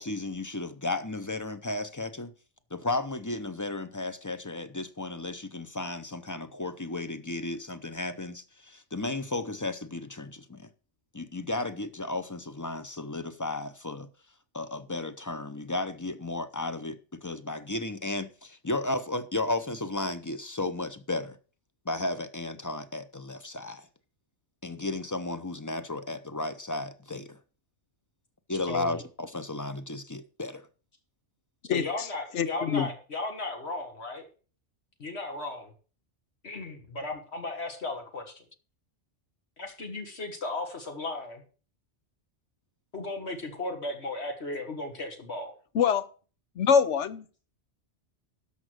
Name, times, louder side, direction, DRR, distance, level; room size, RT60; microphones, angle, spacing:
voice 1, 0.0-2.3 2.7-10.7 11.1-14.1 14.5-21.4 21.9-23.9 24.6-27.4 28.5-30.7, left 2 dB, 20° left, 0.6 m, -34 dB
voice 2, 28.6-29.0 31.7-34.2 35.0-35.7 36.4-38.5 39.6-41.4 42.9-45.5, left 2 dB, 65° left, 1.9 m, -35 dB
voice 3, 32.3-32.9 45.7-46.0 46.6-47.2, left 7 dB, 90° left, 1.2 m, -24 dB
12.5 x 5.4 x 6.3 m
omnidirectional pair, 1.2 m